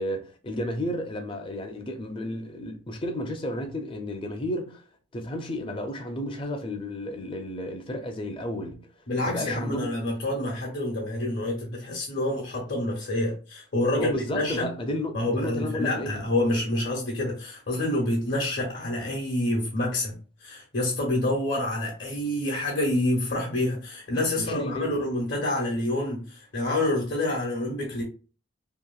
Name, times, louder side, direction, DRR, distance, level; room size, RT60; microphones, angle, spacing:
voice 1, 0.0-4.9 5.1-8.9 9.2-9.9 13.9-16.2 24.4-25.0, left 1 dB, 25° left, 0.5 m, -32 dB
voice 2, 9.1-14.7 15.1-28.0, left 1 dB, 60° left, 0.9 m, -27 dB
2.9 x 2.7 x 2.3 m
head